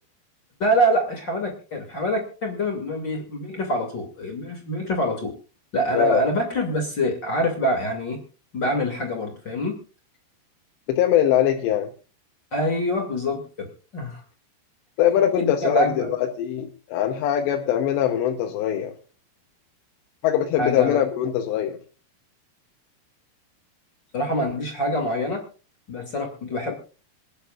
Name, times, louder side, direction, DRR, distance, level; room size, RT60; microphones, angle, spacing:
voice 1, 0.6-5.3 5.7-8.2 8.5-9.8 12.5-13.7 13.9-14.2 15.4-16.1 20.6-21.0 24.1-25.4 25.9-26.7, equal, 35° left, 2 dB, 2.2 m, -25 dB
voice 2, 10.9-11.9 15.0-18.9 20.2-21.8, left 10 dB, 80° left, 3 dB, 3.1 m, -22 dB
26.5 x 10.5 x 2.4 m, 0.35 s
omnidirectional pair, 5.0 m